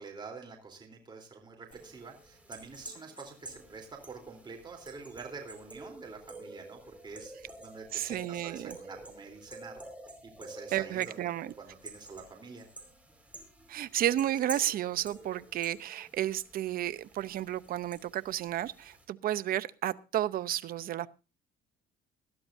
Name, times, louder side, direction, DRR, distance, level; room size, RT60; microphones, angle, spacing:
voice 1, 0.0-7.3 7.6-9.8 10.2-11.2 11.6-12.7, right 4 dB, 25° right, 2 dB, 3.5 m, -47 dB
sound 1, 1.7-19.0, right 2 dB, 10° right, 4.5 m, -49 dB
voice 2, 7.9-8.8 10.7-11.5 13.7-21.1, right 12 dB, 60° right, 14 dB, 0.8 m, -32 dB
20.5 x 13.5 x 2.7 m, 0.30 s
cardioid pair, 110°, 17 cm